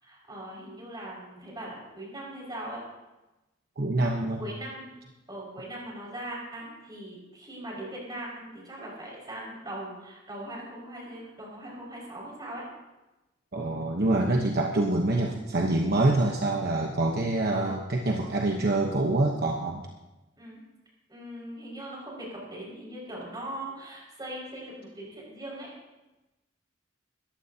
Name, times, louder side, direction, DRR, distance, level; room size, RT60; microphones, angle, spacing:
voice 1, 0.0-2.8 4.4-4.8 5.3-12.6 17.5-17.8 20.4-20.6 21.1-25.7, right 1 dB, 20° right, -4 dB, 5.7 m, -40 dB
voice 2, 3.8-4.4 13.5-19.9, right 2 dB, 55° right, 1 dB, 1.1 m, -26 dB
21.0 x 14.5 x 2.9 m, 1.0 s
head